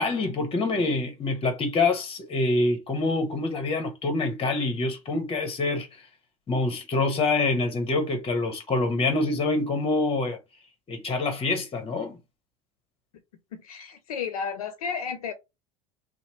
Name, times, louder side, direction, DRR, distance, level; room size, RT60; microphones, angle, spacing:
voice 1, 0.0-5.9 6.5-10.4 10.9-12.2, left 3 dB, 30° left, 1.2 m, -26 dB
voice 2, 13.5-15.3, left 6 dB, 80° left, 0.6 m, -32 dB
2.8 x 2.2 x 3.0 m
hypercardioid pair, 80°, 18 cm